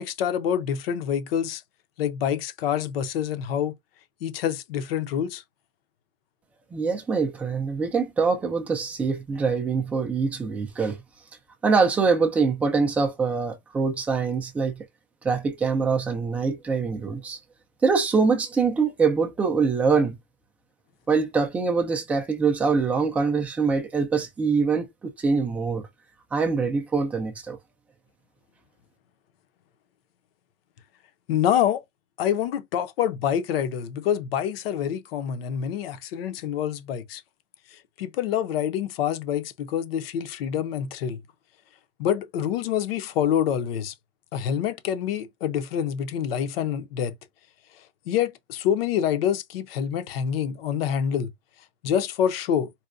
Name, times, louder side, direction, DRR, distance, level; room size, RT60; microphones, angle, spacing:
voice 1, 0.0-1.6 2.0-3.7 4.2-5.4 31.3-31.8 32.2-37.2 37.7-41.2 42.0-43.9 44.3-47.1 48.1-51.3 51.8-52.7, left 9 dB, 70° left, 0.7 m, -26 dB
voice 2, 6.7-11.0 11.6-14.7 15.2-17.4 17.8-20.2 21.1-25.9 26.3-27.6, right 5 dB, 5° right, 0.3 m, -24 dB
4.1 x 2.2 x 2.4 m
supercardioid pair, 160°, 31 cm